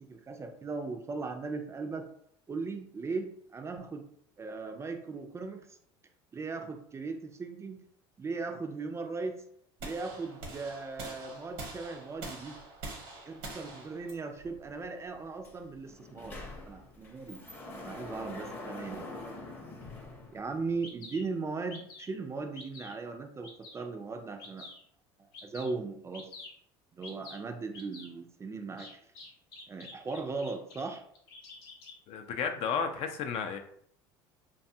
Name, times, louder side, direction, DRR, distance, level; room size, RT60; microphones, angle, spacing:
voice 1, 0.0-2.0 2.5-4.0 4.4-5.8 6.3-7.8 8.2-9.4 9.8-12.6 13.3-16.4 16.7-17.4 17.8-19.1 20.3-24.7 25.2-26.3 26.9-28.9 29.7-31.0, right 4 dB, 25° right, 4 dB, 0.4 m, -38 dB
sound 1, 9.8-15.9, right 2 dB, 80° right, 0.9 m, -45 dB
Sliding door, 15.4-15.6 15.9-20.9, left 2 dB, 15° left, 0.6 m, -44 dB
Bird vocalization bird call bird song, 20.4-20.5 20.8-21.2 21.7-22.2 22.6-23.0 23.4-23.8 24.4-24.8 25.3-25.7 26.1-26.5 27.0-27.4 27.7-28.1 28.8-30.8 31.2-31.9, left 3 dB, 85° left, 0.7 m, -48 dB
voice 2, 32.1-33.6, left 6 dB, 55° left, 6 dB, 0.4 m, -32 dB
2.6 x 2.3 x 2.6 m, 0.66 s
supercardioid pair, 85°, 12 cm